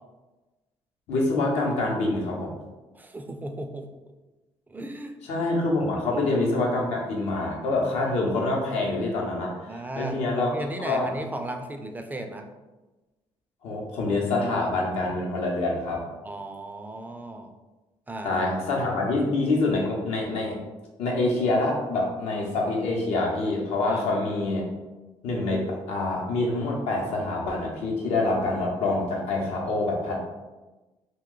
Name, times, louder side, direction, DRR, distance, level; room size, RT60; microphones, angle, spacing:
voice 1, 1.1-2.5 5.2-11.1 13.6-16.0 18.2-20.6 21.0-24.6 25.2-30.2, left 2 dB, 80° left, -1 dB, 0.8 m, -26 dB
voice 2, 2.9-3.9 4.7-5.1 5.4-5.5 6.1-6.3 9.7-10.2 10.5-12.5 16.2-17.5 18.1-18.4 23.9-24.1, right 1 dB, 15° right, 5 dB, 0.3 m, -35 dB
2.6 x 2.3 x 3.7 m, 1.1 s
cardioid pair, 85°, 11 cm